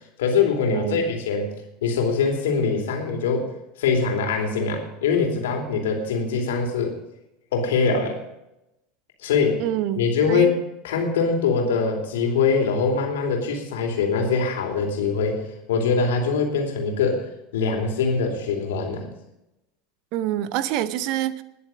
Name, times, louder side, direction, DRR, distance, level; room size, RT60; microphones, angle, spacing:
voice 1, 0.2-1.5 1.8-3.5 3.8-6.9 7.5-8.2 9.2-9.6 9.9-10.6 10.8-19.1, left 5 dB, 65° left, 2 dB, 2.9 m, -23 dB
voice 2, 0.7-1.0 9.6-10.5 20.1-21.4, right 12 dB, 50° right, 16 dB, 0.7 m, -26 dB
20.5 x 6.9 x 5.4 m, 0.88 s
figure-of-eight pair, 75°, 0 cm